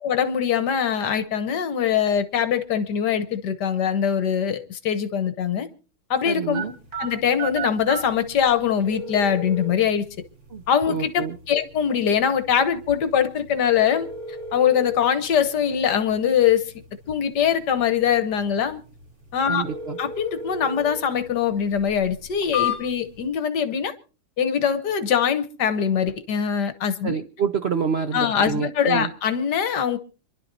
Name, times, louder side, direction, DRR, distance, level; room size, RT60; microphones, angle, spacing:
voice 1, 0.0-5.7 6.1-6.6 7.0-10.0 10.7-14.1 14.5-16.7 17.1-18.8 19.3-19.6 20.0-23.9 24.4-27.1 28.1-30.0, left 8 dB, 60° left, 1.4 m, -22 dB
voice 2, 6.2-6.7 10.5-11.4 19.5-20.0 27.0-29.1, right 6 dB, 75° right, 0.5 m, -27 dB
sound 1, 6.5-23.3, left 2 dB, 50° right, 5.7 m, -36 dB
27.0 x 11.5 x 2.6 m
omnidirectional pair, 2.2 m